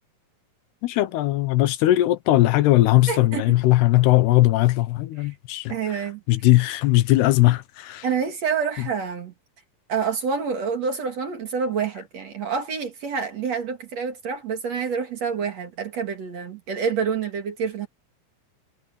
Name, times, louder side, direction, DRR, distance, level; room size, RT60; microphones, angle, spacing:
voice 1, 0.8-6.0 6.3-8.1 8.8-8.9, left 16 dB, 80° left, 3.0 m, -19 dB
voice 2, 3.1-3.5 5.2-5.3 5.7-6.2 8.0-9.3 9.9-17.9, right 6 dB, 50° right, 2.7 m, -27 dB
omnidirectional pair, 4.6 m